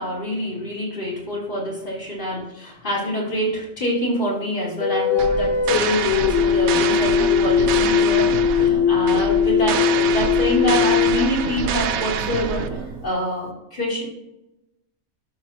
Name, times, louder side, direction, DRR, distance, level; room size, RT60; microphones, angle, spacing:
voice 1, 0.0-14.0, equal, 40° left, -5 dB, 3.5 m, -26 dB
sound 1, 4.8-12.1, left 8 dB, 65° left, 0.9 m, -20 dB
sound 2, 5.2-13.1, right 7 dB, 85° right, 1.1 m, -26 dB
12.0 x 6.6 x 3.0 m, 0.91 s
omnidirectional pair, 1.4 m